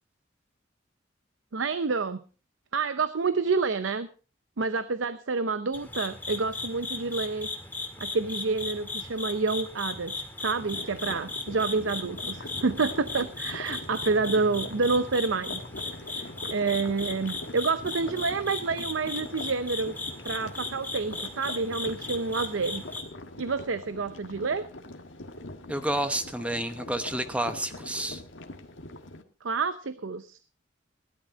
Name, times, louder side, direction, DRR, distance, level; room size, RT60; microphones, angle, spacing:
voice 1, 1.5-2.2 2.7-4.1 4.6-7.5 8.0-15.6 16.1-20.0 20.2-22.8 23.4-24.7 29.4-30.4, right 4 dB, 85° right, 13 dB, 0.7 m, -28 dB
sound 1, 5.7-23.0, left 3 dB, 10° left, 2.0 m, -37 dB
sound 2, 10.6-29.2, left 2 dB, 80° left, 1.6 m, -43 dB
voice 2, 25.7-28.2, right 1 dB, 5° right, 9 dB, 0.9 m, -30 dB
17.0 x 12.0 x 4.0 m, 0.35 s
head